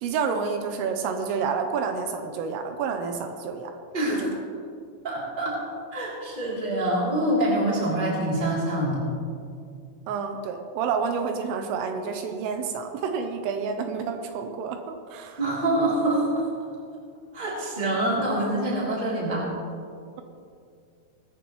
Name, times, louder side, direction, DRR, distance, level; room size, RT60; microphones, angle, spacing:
voice 1, 0.0-3.7 4.1-4.3 10.1-15.4, right 5 dB, 80° right, 5 dB, 3.3 m, -29 dB
voice 2, 3.9-4.3 5.0-5.6 5.9-9.0 15.4-16.4 17.3-19.5, right 1 dB, 15° right, -5 dB, 2.4 m, -25 dB
19.5 x 14.5 x 3.2 m, 2.3 s
omnidirectional pair, 5.9 m